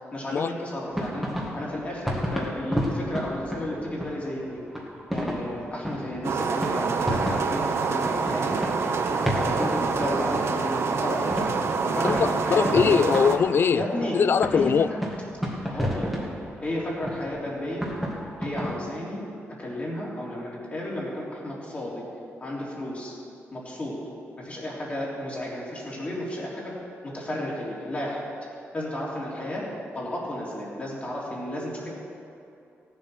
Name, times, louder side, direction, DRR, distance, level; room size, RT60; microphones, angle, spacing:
voice 1, 0.1-1.3 1.5-4.6 5.1-8.5 9.3-11.3 11.8-13.0 13.7-14.2 14.5-14.7 15.7-16.1 16.6-17.9 18.4-19.3 19.6-22.0 22.4-23.1 23.5-24.0 24.4-26.7 27.0-28.2 28.7-29.7 29.9-31.9, left 1 dB, 30° left, -5 dB, 3.4 m, -32 dB
sound 1, 0.9-4.4 4.7-10.7 11.0-18.8, equal, ahead, 2.0 m, -32 dB
sound 2, 6.2-13.4, right 5 dB, 60° right, 0.9 m, -26 dB
voice 2, 12.0-13.8 14.1-14.9, left 7 dB, 50° left, 16 dB, 0.3 m, -22 dB
17.0 x 7.7 x 6.1 m, 2.6 s
wide cardioid pair, 125°, 5 cm